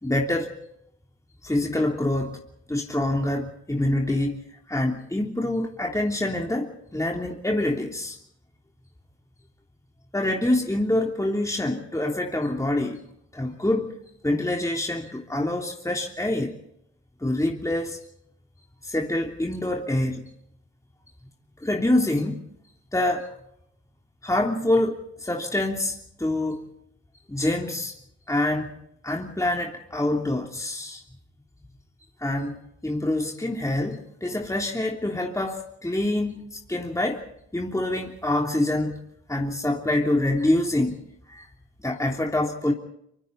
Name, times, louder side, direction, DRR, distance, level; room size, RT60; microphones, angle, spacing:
voice 1, 0.0-0.5 1.4-2.4 2.7-8.2 10.1-13.0 13.3-14.0 14.2-16.5 17.2-18.0 18.8-20.2 21.6-22.4 22.9-23.3 24.2-26.6 27.3-27.9 28.3-28.7 29.0-31.0 32.2-37.2 37.5-39.0 39.3-41.0 41.3-41.5 41.8-42.7, left 1 dB, 10° left, 0 dB, 3.3 m, -26 dB
26.5 x 24.5 x 4.1 m, 0.77 s
supercardioid pair, 50°, 32 cm